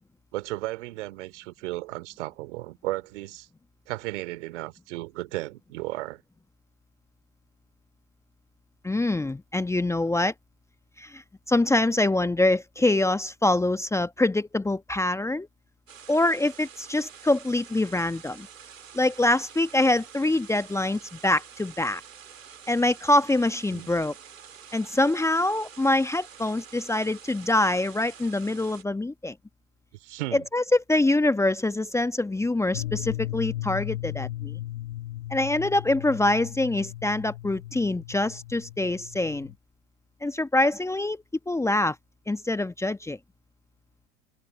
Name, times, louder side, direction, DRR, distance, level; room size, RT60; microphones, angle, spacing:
voice 1, 0.3-3.5 3.9-6.2 23.7-23.9 29.9-30.5, right 18 dB, 65° right, 3.1 m, -34 dB
voice 2, 8.8-10.3 11.0-15.5 16.1-18.5 18.9-22.0 22.7-24.1 24.7-29.3 30.3-34.6 35.3-39.5 40.2-41.9 42.3-43.2, left 2 dB, 5° left, 1.2 m, -25 dB
sound 1, 15.9-28.8, right 8 dB, 80° right, 3.0 m, -48 dB
sound 2, 32.7-39.6, left 14 dB, 65° left, 1.7 m, -36 dB
figure-of-eight pair, 85°, 39 cm